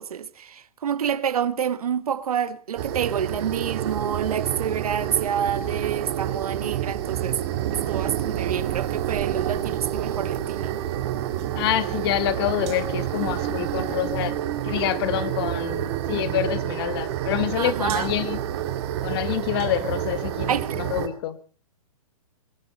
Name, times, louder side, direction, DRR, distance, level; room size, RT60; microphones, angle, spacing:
voice 1, 0.0-7.4 7.7-10.8 17.6-18.1 20.5-20.8, right 8 dB, 90° right, 1.2 m, -28 dB
sound 1, 2.8-21.1, right 11 dB, 45° right, 2.3 m, -29 dB
sound 2, 9.1-18.3, right 12 dB, 20° right, 0.8 m, -38 dB
voice 2, 11.5-14.4 14.6-18.4 19.0-21.4, left 12 dB, 40° left, 1.2 m, -27 dB
21.5 x 12.5 x 5.1 m
hypercardioid pair, 155°, 18 cm